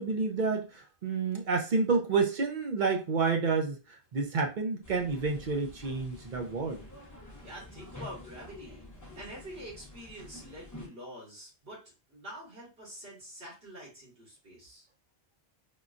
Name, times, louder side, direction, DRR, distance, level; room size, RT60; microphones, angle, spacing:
voice 1, 0.0-6.8, right 4 dB, 55° right, 0.7 m, -29 dB
sound 1, 4.8-10.9, left 2 dB, 20° left, 0.8 m, -48 dB
voice 2, 7.4-8.8 9.1-11.8 12.1-14.9, equal, 90° right, 2.0 m, -46 dB
3.7 x 2.2 x 2.5 m
omnidirectional pair, 1.1 m